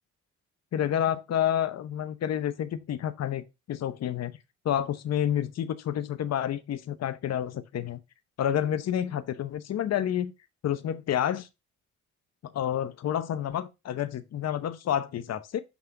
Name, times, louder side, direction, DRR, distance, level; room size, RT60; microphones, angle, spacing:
voice 1, 0.7-4.3 4.6-8.0 8.4-10.3 10.6-11.5 12.4-15.6, left 10 dB, 60° left, 1.0 m, -29 dB
6.2 x 5.6 x 3.4 m
cardioid pair, 90°, 30 cm